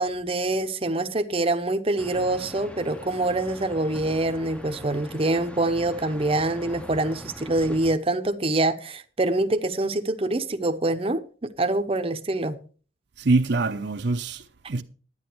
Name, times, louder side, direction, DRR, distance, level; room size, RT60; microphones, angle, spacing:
voice 1, 0.0-12.6, right 2 dB, 30° right, 0.8 m, -25 dB
sound 1, 2.0-8.0, equal, 5° left, 0.7 m, -42 dB
voice 2, 13.2-14.8, right 3 dB, 60° right, 0.7 m, -24 dB
11.5 x 9.7 x 4.5 m
head